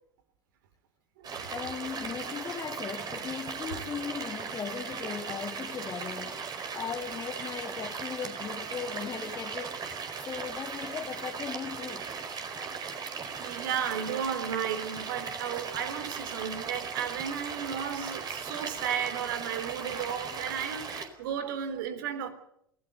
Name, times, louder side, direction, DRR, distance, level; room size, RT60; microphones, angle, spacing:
sound 1, 1.2-21.1, right 5 dB, 35° right, 4.9 m, -38 dB
voice 1, 1.5-6.4 6.7-12.1, left 7 dB, 30° left, 2.1 m, -38 dB
voice 2, 13.4-22.3, right 8 dB, 70° right, 3.6 m, -34 dB
28.0 x 17.5 x 6.8 m
hypercardioid pair, 75°, 11 cm